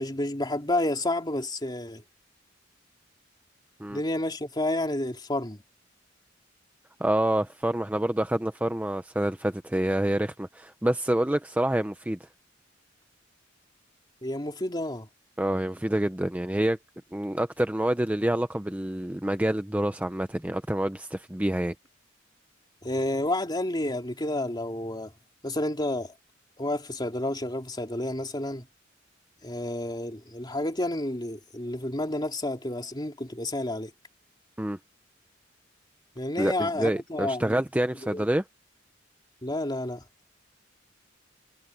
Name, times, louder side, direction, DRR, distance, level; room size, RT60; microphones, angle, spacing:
voice 1, 0.0-2.0 3.9-5.6 14.2-15.1 22.8-25.1 25.4-26.1 26.6-28.7 29.4-33.9 36.1-37.6 38.0-38.3 39.4-40.0, left 1 dB, 20° left, 3.2 m, -30 dB
voice 2, 7.0-12.3 15.4-16.8 17.1-21.7 34.6-34.8 36.4-38.4, right 1 dB, 10° right, 0.6 m, -27 dB
head